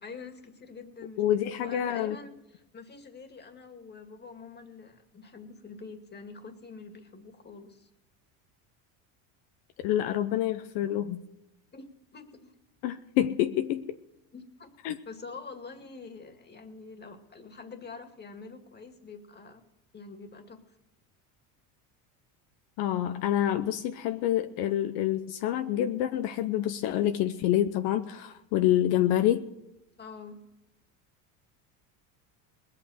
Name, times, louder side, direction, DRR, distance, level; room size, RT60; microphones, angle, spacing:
voice 1, 0.0-7.9 11.7-12.5 14.3-14.7 15.0-19.6 19.9-20.8 30.0-30.4, left 4 dB, 25° left, 6 dB, 2.1 m, -46 dB
voice 2, 1.2-2.2 9.8-11.2 12.8-14.0 14.8-15.0 22.8-29.5, left 12 dB, 70° left, 8 dB, 0.9 m, -27 dB
20.0 x 8.5 x 6.4 m, 0.95 s
supercardioid pair, 110°, 41 cm